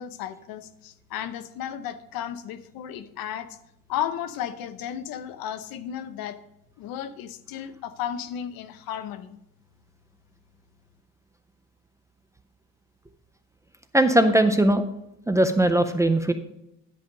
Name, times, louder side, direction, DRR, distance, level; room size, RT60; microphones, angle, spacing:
voice 1, 0.0-3.6 3.9-6.4 6.8-9.4, left 9 dB, 80° left, 12 dB, 0.8 m, -34 dB
voice 2, 13.9-14.8 15.3-16.3, right 1 dB, 10° right, 8 dB, 0.4 m, -19 dB
10.5 x 5.4 x 5.1 m, 0.82 s
cardioid pair, 155°, 35 cm